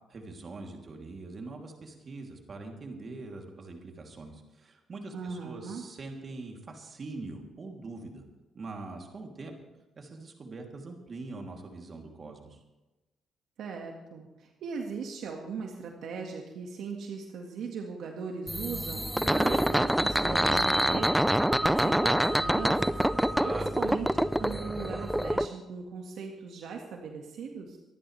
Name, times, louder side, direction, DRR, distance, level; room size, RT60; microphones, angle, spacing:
voice 1, 0.1-8.2 8.5-9.5 10.0-12.6 23.3-24.0, right 3 dB, 40° right, 1 dB, 3.1 m, -43 dB
voice 2, 5.1-5.8 13.6-21.1 21.6-23.0 23.5-27.8, right 5 dB, 75° right, 1 dB, 1.8 m, -38 dB
sound 1, 18.5-25.5, equal, 5° right, 0.6 m, -26 dB
25.5 x 11.0 x 3.4 m, 1.1 s
cardioid pair, 90°, 0 cm